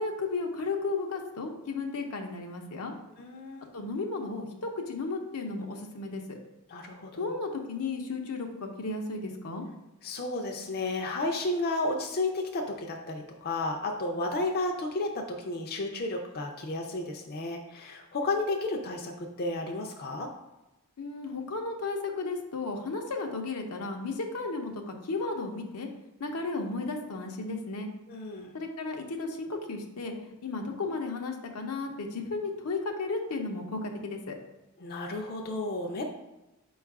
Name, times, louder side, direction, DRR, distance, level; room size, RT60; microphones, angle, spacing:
voice 1, 0.0-2.9 3.7-6.4 7.2-9.7 21.0-25.9 26.2-27.9 28.5-34.4, left 3 dB, 80° left, 3 dB, 0.6 m, -34 dB
voice 2, 3.2-3.6 6.7-7.3 10.0-20.3 28.1-28.6 34.8-36.0, left 2 dB, 45° left, 2 dB, 0.4 m, -32 dB
4.6 x 2.4 x 4.5 m, 0.99 s
head